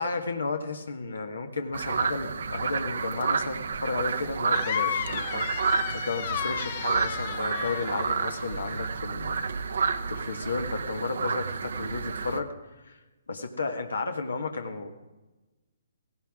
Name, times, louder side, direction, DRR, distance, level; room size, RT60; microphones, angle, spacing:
voice 1, 0.0-9.4 10.1-12.5 12.8-13.0 13.3-14.9, left 3 dB, 85° left, 5 dB, 1.5 m, -33 dB
sound 1, 1.7-12.4, right 5 dB, 70° right, 0.9 m, -30 dB
sound 2, 4.5-8.9, left 9 dB, 45° left, 1.0 m, -33 dB
17.0 x 16.5 x 3.6 m, 1.1 s
hypercardioid pair, 140°, 0 cm